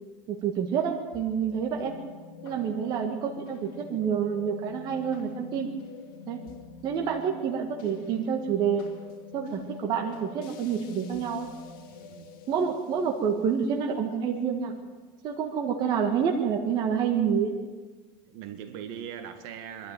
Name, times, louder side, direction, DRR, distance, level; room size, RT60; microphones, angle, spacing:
voice 1, 0.3-1.9 2.4-5.7 6.3-6.4 6.8-8.9 9.3-11.5 12.5-14.7 15.2-17.5, right 7 dB, 40° right, 2 dB, 1.7 m, -28 dB
sound 1, 1.1-15.6, left 6 dB, 75° left, 2.4 m, -46 dB
voice 2, 11.9-12.3 18.3-19.9, right 8 dB, 60° right, 7 dB, 2.1 m, -40 dB
23.5 x 12.0 x 9.0 m, 1.4 s
cardioid pair, 160°, 12 cm